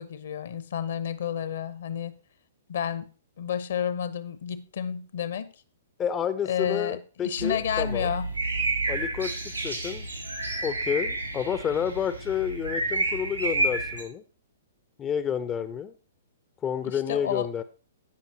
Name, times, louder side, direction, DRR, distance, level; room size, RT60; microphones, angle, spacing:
voice 1, 0.0-2.1 2.7-3.1 3.4-5.5 6.4-8.3 16.8-17.5, left 9 dB, 55° left, 15 dB, 0.7 m, -30 dB
voice 2, 6.0-8.1 8.9-9.3 9.6-10.1 10.6-14.2 15.0-15.9 16.6-17.6, left 8 dB, 20° left, 12 dB, 0.5 m, -29 dB
sound 1, 7.4-14.0, right 2 dB, 90° right, 4.1 m, -30 dB
15.5 x 5.5 x 2.8 m, 0.37 s
figure-of-eight pair, 115°, 0 cm